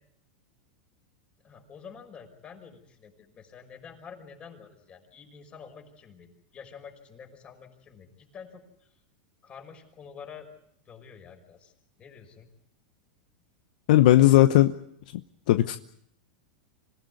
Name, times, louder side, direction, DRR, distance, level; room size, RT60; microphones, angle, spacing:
voice 1, 1.4-8.9 9.4-10.5 10.9-11.7 12.0-12.5, left 6 dB, 25° left, 4 dB, 5.8 m, -48 dB
voice 2, 13.9-14.7 15.5-15.8, left 14 dB, 70° left, 10 dB, 0.9 m, -17 dB
26.0 x 16.0 x 9.7 m, 0.71 s
supercardioid pair, 125°, 5 cm